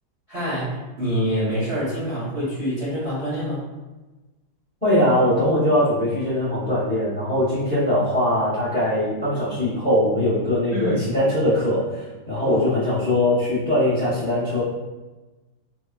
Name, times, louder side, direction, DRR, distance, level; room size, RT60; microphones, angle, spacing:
voice 1, 0.3-3.7 10.7-11.0 12.4-12.7, equal, 50° right, -9 dB, 0.8 m, -26 dB
voice 2, 4.8-14.6, left 1 dB, 10° left, -10 dB, 0.6 m, -21 dB
3.5 x 2.2 x 2.4 m, 1.2 s
omnidirectional pair, 2.2 m